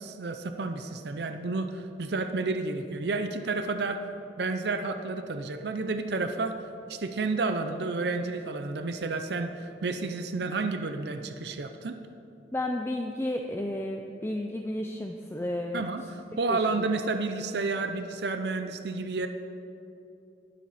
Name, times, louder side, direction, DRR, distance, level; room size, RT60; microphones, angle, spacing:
voice 1, 0.0-4.0 4.4-12.0 15.7-19.3, right 3 dB, 75° right, 7 dB, 0.6 m, -31 dB
voice 2, 12.5-15.9 16.5-16.9, left 1 dB, 15° left, 3 dB, 0.4 m, -32 dB
22.0 x 7.5 x 4.2 m, 2.8 s
head